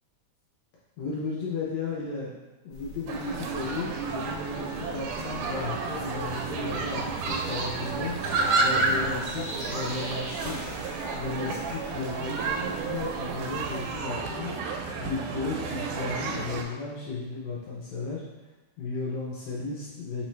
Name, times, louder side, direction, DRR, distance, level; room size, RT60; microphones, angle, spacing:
voice 1, 1.0-2.3 2.6-8.1 8.6-10.7 11.1-14.5 15.0-18.2 18.8-20.2, left 3 dB, 80° left, -5 dB, 1.5 m, -34 dB
sound 1, 2.7-14.0, equal, 40° left, 0.9 m, -45 dB
sound 2, 3.1-16.6, right 4 dB, 80° right, 2.0 m, -31 dB
sound 3, 6.8-13.9, right 1 dB, 45° right, 1.1 m, -46 dB
4.4 x 3.8 x 3.1 m, 1.1 s
omnidirectional pair, 3.8 m